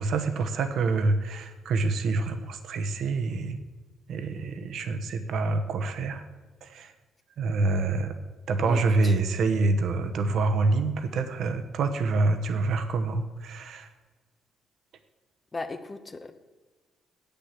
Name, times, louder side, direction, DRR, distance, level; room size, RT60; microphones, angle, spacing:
voice 1, 0.0-3.6 4.1-6.2 6.6-6.9 7.4-8.1 8.5-13.9, right 3 dB, 70° right, 8 dB, 1.1 m, -26 dB
voice 2, 8.6-9.1 15.5-16.3, left 3 dB, 30° left, 8 dB, 0.9 m, -37 dB
8.3 x 6.9 x 7.5 m, 1.3 s
cardioid pair, 90°, 0 cm